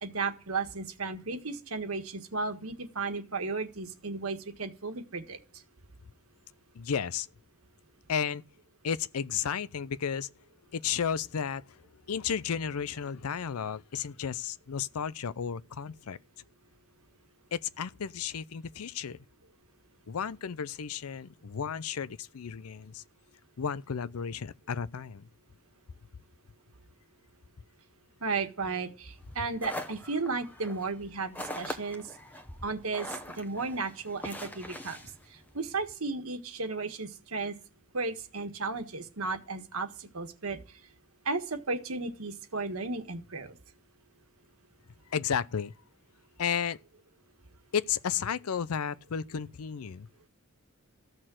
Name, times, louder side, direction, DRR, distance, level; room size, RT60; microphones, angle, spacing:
voice 1, 0.0-5.4 28.2-32.0 32.6-35.0 35.5-37.5 37.9-40.6 41.2-43.6, right 3 dB, 80° right, 1.6 m, -34 dB
voice 2, 6.7-7.3 8.1-8.4 8.8-10.3 10.7-16.2 17.5-19.2 20.1-23.0 23.6-25.3 45.1-45.7 46.4-46.8 47.7-50.1, left 7 dB, 90° left, 0.5 m, -33 dB
sound 1, 29.2-35.9, left 1 dB, 10° left, 1.0 m, -43 dB
14.5 x 6.5 x 7.5 m
head